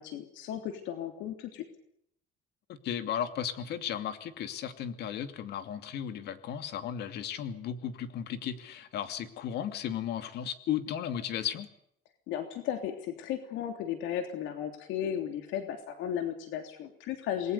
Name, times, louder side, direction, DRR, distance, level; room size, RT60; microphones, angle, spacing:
voice 1, 0.0-1.6 12.3-17.5, left 9 dB, 80° left, 6 dB, 3.3 m, -35 dB
voice 2, 2.7-11.7, left 9 dB, 60° left, 9 dB, 2.7 m, -35 dB
28.0 x 21.0 x 6.9 m, 0.70 s
cardioid pair, 165°, 19 cm